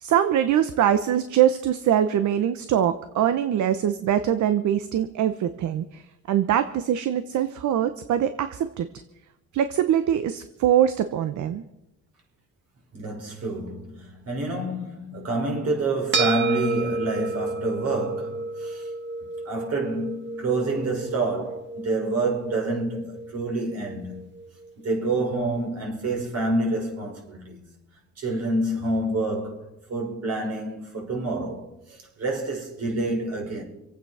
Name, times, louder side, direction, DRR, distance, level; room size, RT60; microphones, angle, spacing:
voice 1, 0.0-6.0 6.3-8.9 9.5-11.6, right 10 dB, 70° right, 0.9 m, -23 dB
voice 2, 12.9-18.9 19.5-24.2 24.8-27.7 28.2-33.6, right 2 dB, 55° right, 5.2 m, -28 dB
sound 1, 16.1-24.7, right 3 dB, 40° right, 1.9 m, -31 dB
25.5 x 8.7 x 5.6 m
cardioid pair, 90°, 30 cm